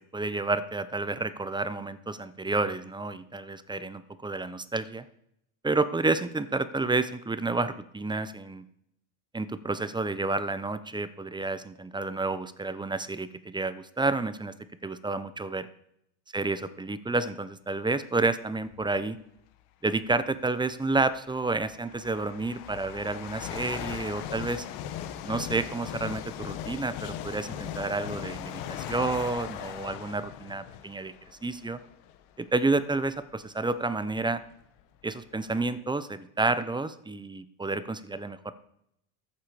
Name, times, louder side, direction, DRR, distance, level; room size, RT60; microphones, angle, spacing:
voice 1, 0.1-5.0 5.6-8.6 9.3-14.5 14.8-15.7 16.3-19.2 19.8-24.6 25.2-31.1 31.4-31.8 32.4-34.4 35.0-38.5, right 3 dB, 10° right, 13 dB, 0.7 m, -30 dB
sound 1, 18.7-18.9 20.0-20.1 20.9-32.3 32.9-33.1 33.9-34.0 34.2-35.8, left 10 dB, 75° left, 1.3 m, -39 dB
13.5 x 7.5 x 4.9 m, 0.75 s
supercardioid pair, 85°, 46 cm